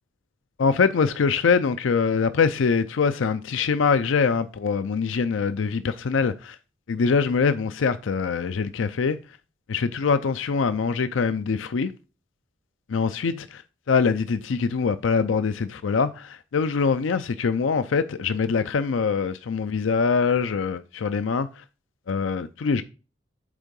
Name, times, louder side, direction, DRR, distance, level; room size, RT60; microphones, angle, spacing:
voice 1, 0.6-6.6 6.9-9.2 9.7-11.9 12.9-21.6 22.1-22.8, left 5 dB, 80° left, 0.5 m, -23 dB
8.4 x 3.6 x 5.3 m
head